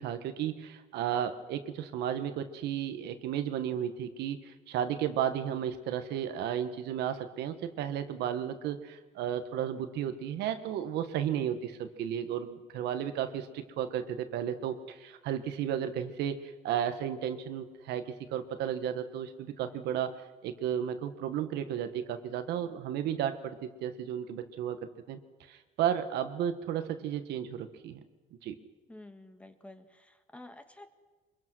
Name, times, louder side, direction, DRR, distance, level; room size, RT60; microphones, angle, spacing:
voice 1, 0.0-20.1 20.4-24.8 25.1-25.2 25.5-28.0 28.4-28.5, right 9 dB, 80° right, 8 dB, 1.5 m, -33 dB
voice 2, 28.9-30.9, left 1 dB, 5° left, 7 dB, 1.6 m, -50 dB
23.5 x 22.5 x 6.2 m, 1.3 s
cardioid pair, 110°, 17 cm